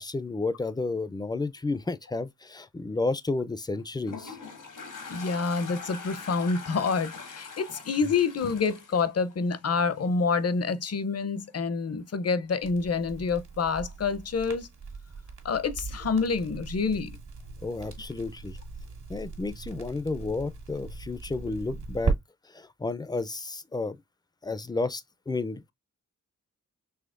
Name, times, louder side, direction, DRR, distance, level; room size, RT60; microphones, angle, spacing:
voice 1, 0.0-4.4 17.6-18.6 19.1-22.1 22.5-24.0 24.4-25.7, left 3 dB, 15° left, 0.4 m, -32 dB
Toilet flush, 3.7-10.1, left 5 dB, 90° left, 1.5 m, -42 dB
voice 2, 5.1-14.7 15.4-17.1, left 5 dB, 55° left, 0.6 m, -27 dB
Crackle, 12.6-22.2, right 4 dB, 70° right, 1.5 m, -37 dB
5.6 x 3.1 x 2.4 m
wide cardioid pair, 105°, 31 cm